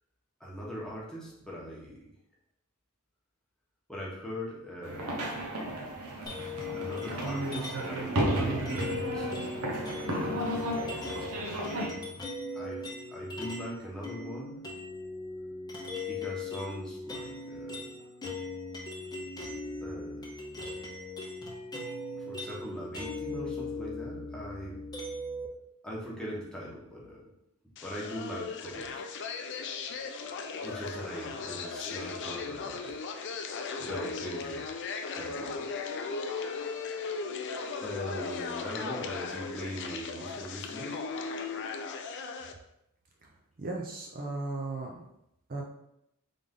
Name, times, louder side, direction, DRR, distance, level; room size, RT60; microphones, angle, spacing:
voice 1, 0.4-2.1 3.9-5.7 6.7-9.6 11.5-12.3 12.5-14.7 16.1-18.1 19.8-20.3 22.1-24.8 25.8-27.2 27.8-29.0 30.6-32.9 33.8-34.7 35.1-35.7 37.8-41.0, equal, 5° left, -6 dB, 1.1 m, -41 dB
sound 1, 4.8-11.9, right 1 dB, 75° right, 0.8 m, -33 dB
sound 2, 6.3-8.0 8.7-13.7 14.0-25.5, left 3 dB, 20° left, 0.7 m, -39 dB
sound 3, 27.8-42.5, left 4 dB, 55° left, 0.4 m, -37 dB
voice 2, 43.6-45.0 45.5-45.6, right 2 dB, 40° right, -1 dB, 0.5 m, -36 dB
3.8 x 3.4 x 3.6 m, 0.82 s
head